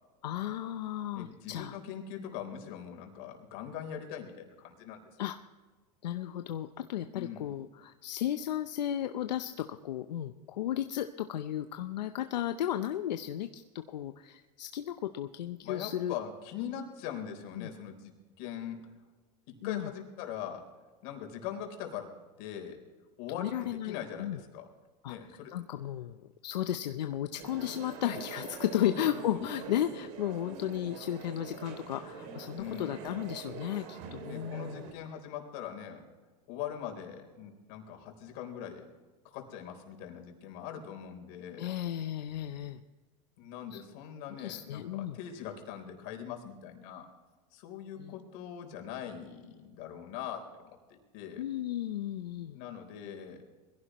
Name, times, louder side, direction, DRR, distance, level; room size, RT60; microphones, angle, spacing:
voice 1, 0.2-1.8 5.2-5.4 6.0-16.1 17.6-17.7 19.6-19.9 23.4-24.4 25.0-25.2 25.5-34.9 41.6-42.8 43.7-43.8 44.4-45.2 48.0-48.1 51.4-52.6, left 11 dB, 90° left, 8 dB, 0.7 m, -34 dB
voice 2, 1.1-5.1 7.1-7.5 15.6-18.8 19.5-20.7 21.0-22.8 23.2-24.7 25.1-25.5 28.8-29.5 32.5-33.0 34.2-36.0 36.5-38.9 39.2-41.7 43.4-47.1 47.5-51.4 52.5-53.4, left 9 dB, 60° left, 3 dB, 3.8 m, -42 dB
sound 1, 27.4-34.9, right 6 dB, 60° right, 2.9 m, -44 dB
22.0 x 16.0 x 3.1 m, 1.4 s
hypercardioid pair, 110°, 21 cm